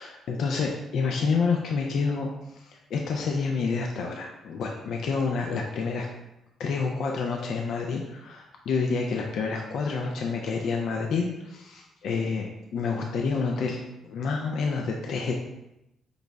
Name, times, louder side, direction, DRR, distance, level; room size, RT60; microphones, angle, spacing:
voice 1, 0.0-6.1 6.6-15.3, left 4 dB, 70° left, 1 dB, 0.4 m, -28 dB
5.2 x 2.0 x 3.4 m, 0.90 s
cardioid pair, 90°, 0 cm